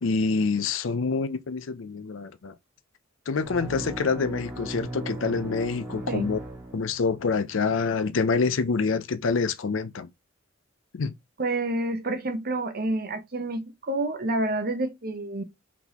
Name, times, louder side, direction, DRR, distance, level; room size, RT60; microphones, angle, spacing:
voice 1, 0.0-2.5 3.3-6.4 6.7-10.1 10.9-11.1, left 4 dB, 70° left, 0.5 m, -26 dB
sound 1, 3.4-7.3, right 1 dB, 10° right, 1.4 m, -37 dB
voice 2, 11.4-15.4, right 2 dB, 50° right, 0.9 m, -28 dB
4.0 x 3.6 x 3.0 m
head